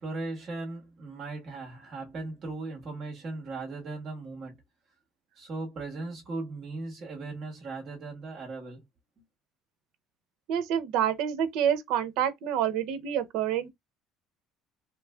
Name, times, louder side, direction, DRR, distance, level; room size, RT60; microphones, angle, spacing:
voice 1, 0.0-4.6 5.4-8.8, right 3 dB, 35° right, 1.5 m, -38 dB
voice 2, 10.5-13.7, right 9 dB, 65° right, 0.7 m, -27 dB
3.1 x 3.1 x 2.3 m
cardioid pair, 160°, 0 cm